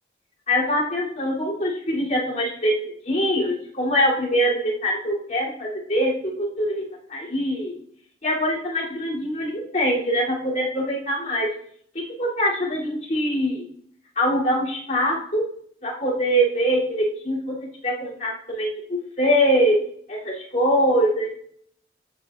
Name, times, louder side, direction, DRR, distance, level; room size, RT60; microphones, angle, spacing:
voice 1, 0.5-6.8 7.1-7.7 8.2-11.5 12.2-13.6 14.2-15.4 15.8-17.6 17.8-18.7 19.2-19.8 20.1-21.3, equal, 45° left, -6 dB, 2.9 m, -23 dB
15.0 x 7.1 x 2.4 m, 0.64 s
head